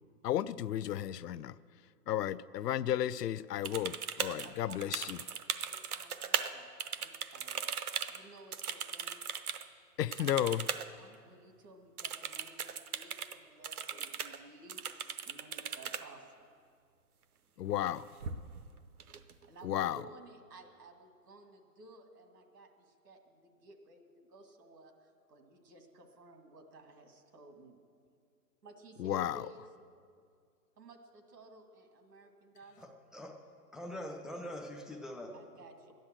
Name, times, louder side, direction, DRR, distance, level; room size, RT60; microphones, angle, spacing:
voice 1, 0.2-1.5 2.1-5.2 10.0-10.6 17.6-18.0 19.6-20.0 29.0-29.5, left 11 dB, 80° left, 16 dB, 0.6 m, -33 dB
sound 1, 3.6-6.5 6.8-9.6 10.1-10.9 11.1-11.2 12.0-13.4 13.6-14.4 14.7-16.0 17.7-17.9 18.2-18.7 19.0-19.6, right 7 dB, 65° right, 0.9 m, -38 dB
voice 2, 4.4-5.1 5.7-6.7 7.0-7.7 8.1-9.2 10.2-10.3 11.0-16.5 19.5-27.8 28.6-29.6 30.8-32.9 35.3-35.9, right 2 dB, 85° right, 4 dB, 2.3 m, -55 dB
voice 3, 32.8-33.4 33.7-35.6, left 1 dB, ahead, 0 dB, 0.4 m, -44 dB
12.0 x 10.5 x 7.6 m, 2.2 s
hypercardioid pair, 180°, 47 cm